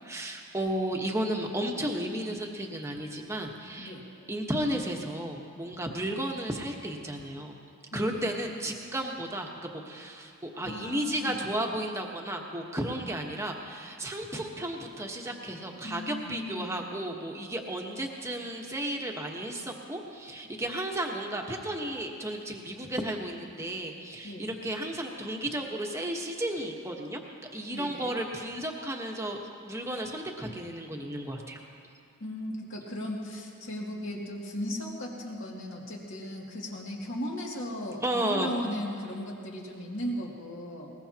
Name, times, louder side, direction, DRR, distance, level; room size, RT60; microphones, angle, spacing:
voice 1, 0.1-3.9 4.3-7.6 7.9-27.2 27.5-31.6 38.0-38.5, right 1 dB, 15° right, 1 dB, 1.2 m, -33 dB
voice 2, 7.9-8.2 10.5-11.6 15.8-16.9 24.2-24.5 27.7-28.2 32.2-40.9, equal, 60° left, -2 dB, 2.4 m, -37 dB
21.0 x 20.0 x 2.9 m, 2.4 s
head